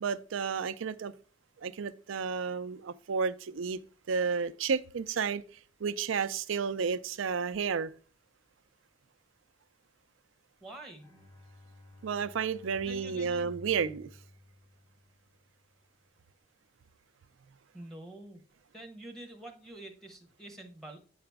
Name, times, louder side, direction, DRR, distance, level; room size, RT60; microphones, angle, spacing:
voice 1, 0.0-1.1 1.6-3.8 4.1-5.4 5.8-7.9 12.0-14.1, right 6 dB, 90° right, 0.5 m, -32 dB
voice 2, 10.6-11.1 12.8-13.5 17.7-18.4 18.7-21.0, right 1 dB, ahead, 1.1 m, -47 dB
Bowed string instrument, 11.0-15.4, left 2 dB, 20° left, 1.9 m, -53 dB
8.6 x 4.9 x 3.4 m
head